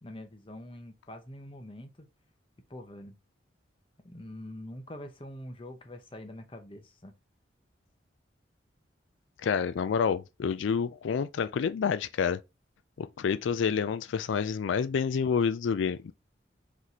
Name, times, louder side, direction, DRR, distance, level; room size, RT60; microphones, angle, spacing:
voice 1, 0.0-2.1 2.7-3.2 4.0-7.1, left 1 dB, 30° left, 0.7 m, -44 dB
voice 2, 9.4-12.4 13.0-16.1, left 6 dB, 85° left, 0.4 m, -28 dB
4.0 x 3.2 x 4.1 m
head